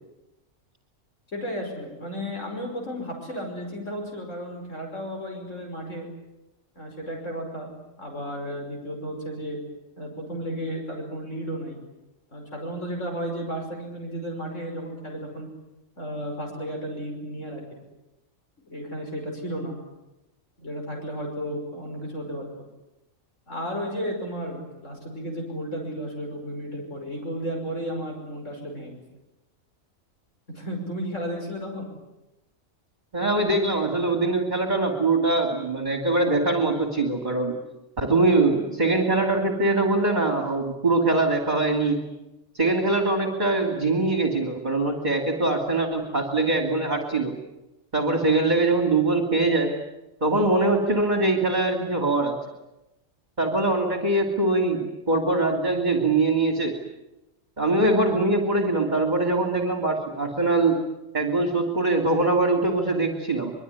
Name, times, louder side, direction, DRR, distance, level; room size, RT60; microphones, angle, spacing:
voice 1, 1.3-6.1 6.8-9.6 10.0-11.8 12.3-15.5 16.0-17.6 18.6-19.8 20.6-22.4 23.5-29.0 30.5-31.9, equal, 60° left, 1 dB, 6.0 m, -33 dB
voice 2, 33.1-37.6 38.0-42.1 42.5-47.4 47.9-49.7 50.2-52.4 53.4-56.8 57.6-60.8 61.1-63.5, right 2 dB, 30° right, 3 dB, 2.8 m, -23 dB
25.0 x 22.5 x 9.6 m, 0.96 s
omnidirectional pair, 1.4 m